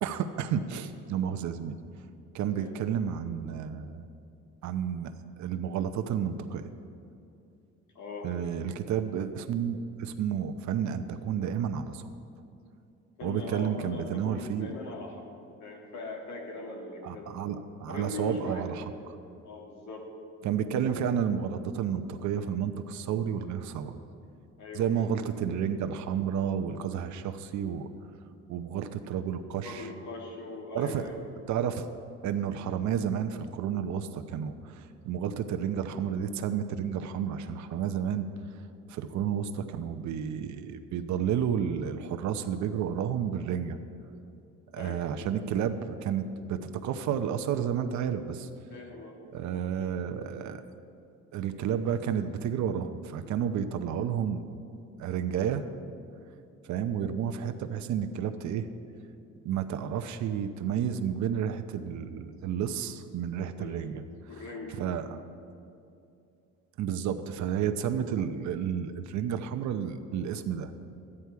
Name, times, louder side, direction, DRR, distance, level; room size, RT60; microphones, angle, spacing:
voice 1, 0.0-1.8 2.3-4.1 4.6-6.7 8.2-12.0 13.2-14.7 17.0-19.2 20.4-24.0 24.7-27.9 28.5-29.9 30.7-31.1 31.5-31.9 32.2-38.3 38.9-43.8 44.7-48.5 49.3-50.6 51.3-54.5 55.0-55.7 56.6-58.7 59.4-64.0 64.8-65.2 66.8-70.7, right 8 dB, 70° right, 8 dB, 0.8 m, -31 dB
voice 2, 2.5-2.9 7.9-8.4 13.2-15.3 15.6-17.5 17.9-18.7 19.4-20.1 24.6-25.1 29.6-31.2 44.8-45.0 48.7-49.2 63.5-63.9 64.3-64.8, left 2 dB, 70° left, 1 dB, 2.1 m, -40 dB
13.0 x 9.9 x 4.6 m, 2.6 s
cardioid pair, 140°, 29 cm